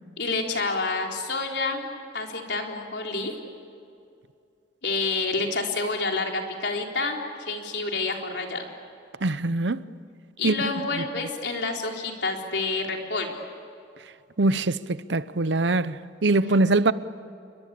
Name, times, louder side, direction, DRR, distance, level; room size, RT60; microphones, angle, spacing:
voice 1, 0.2-1.9 2.1-3.3 4.8-8.7 10.4-13.3, left 3 dB, 70° left, 4.0 m, -28 dB
voice 2, 9.2-9.9 10.4-10.7 11.0-11.1 14.4-16.9, right 2 dB, 80° right, 0.8 m, -23 dB
29.5 x 22.5 x 8.6 m
head